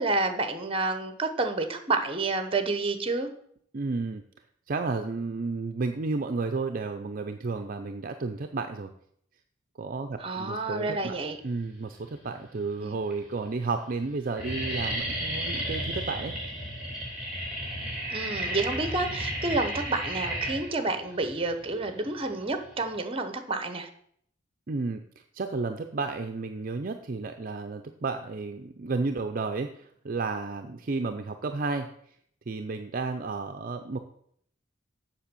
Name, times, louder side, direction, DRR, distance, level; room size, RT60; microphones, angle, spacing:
voice 1, 0.0-3.3 10.2-11.4 12.8-12.9 18.1-23.9, right 3 dB, 30° right, 8 dB, 1.0 m, -29 dB
voice 2, 3.7-4.2 4.7-8.9 9.8-11.2 11.4-16.4 24.7-25.0 25.3-31.9 32.5-34.0, right 3 dB, 45° right, 7 dB, 0.5 m, -32 dB
sound 1, 11.8-12.3 13.0-13.1 13.4-13.8 14.0-23.0, right 1 dB, 5° right, 3.2 m, -33 dB
7.5 x 6.2 x 6.8 m, 0.67 s
head